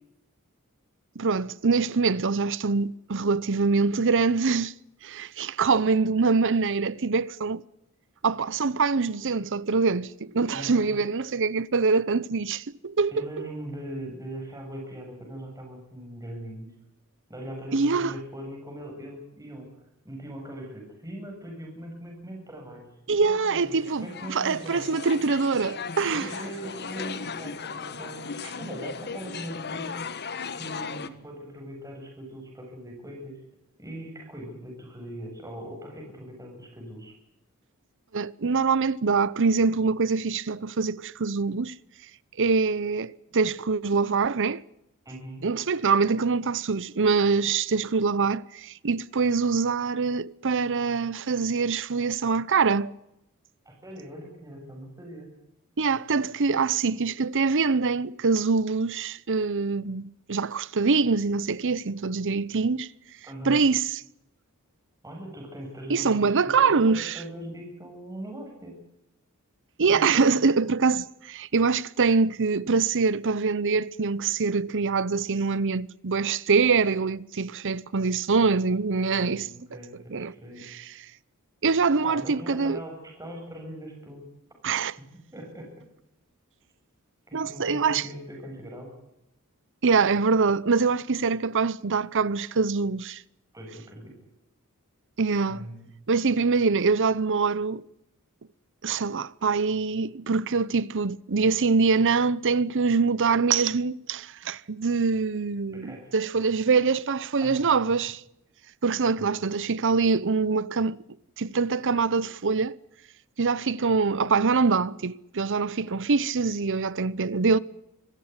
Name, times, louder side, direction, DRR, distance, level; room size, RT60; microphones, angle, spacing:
voice 1, 1.2-4.7 5.0-7.6 8.2-13.5 17.7-18.1 23.1-26.4 38.1-41.8 42.4-44.6 45.4-52.9 55.8-62.9 63.4-63.9 65.9-67.2 69.8-79.5 80.1-80.3 80.7-80.8 81.6-82.8 84.6-85.0 87.3-88.0 89.8-93.2 95.2-95.7 96.1-97.8 98.8-108.2 108.8-111.0 111.4-112.7 113.4-117.6, right 4 dB, 60° right, 0.8 m, -24 dB
voice 2, 10.5-11.0 13.1-16.7 17.3-19.7 20.0-24.9 26.1-30.0 30.6-33.4 33.8-37.2 45.1-45.5 53.7-55.3 63.2-63.7 65.0-68.8 69.8-70.4 79.1-80.6 82.0-84.3 85.0-85.8 87.3-88.9 93.5-94.2 95.5-95.9 105.7-106.1 107.4-107.6 109.2-109.3, right 1 dB, 15° right, 7.4 m, -40 dB
sound 1, 23.5-31.1, left 5 dB, 50° left, 1.4 m, -37 dB
25.5 x 15.5 x 9.7 m
head